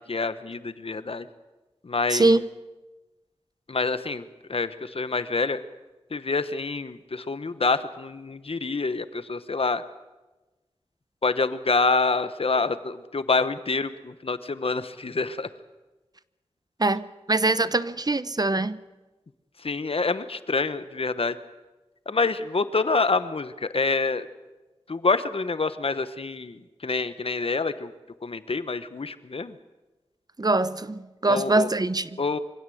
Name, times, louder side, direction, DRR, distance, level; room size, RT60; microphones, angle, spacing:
voice 1, 0.1-1.3 1.8-2.4 3.7-5.6 6.1-9.8 11.2-15.5 19.6-21.4 22.1-24.3 24.9-27.9 28.2-29.5 31.3-31.7 32.2-32.4, left 3 dB, 65° left, 1.2 m, -27 dB
voice 2, 2.1-2.4 16.8-18.8 30.4-32.2, right 2 dB, 40° right, 0.8 m, -23 dB
24.5 x 16.5 x 7.9 m
cardioid pair, 45°, 10 cm